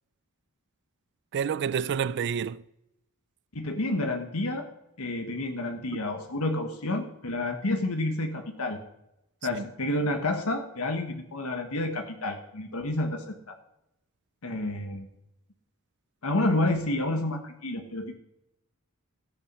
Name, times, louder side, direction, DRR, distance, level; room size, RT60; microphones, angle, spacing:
voice 1, 1.3-2.6 9.5-9.6, right 7 dB, 55° right, 0.3 m, -28 dB
voice 2, 3.5-4.7 5.0-8.8 9.4-13.6 14.4-15.1 16.2-18.2, left 2 dB, 70° left, 1.3 m, -29 dB
14.0 x 8.6 x 5.5 m
head